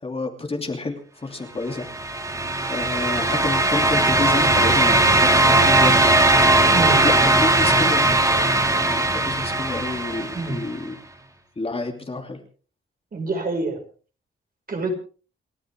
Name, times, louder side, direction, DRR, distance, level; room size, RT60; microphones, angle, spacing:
voice 1, 0.0-1.9 2.7-6.2 7.0-8.1 8.9-11.0 11.6-12.4, left 3 dB, 25° left, 3 dB, 2.9 m, -29 dB
sound 1, 1.8-10.7, right 2 dB, 15° right, 2.4 m, -18 dB
voice 2, 6.7-7.0 10.2-10.6 13.1-13.8 14.7-14.9, right 3 dB, 45° right, 3 dB, 5.5 m, -26 dB
29.5 x 12.5 x 3.6 m, 0.39 s
wide cardioid pair, 125°, 21 cm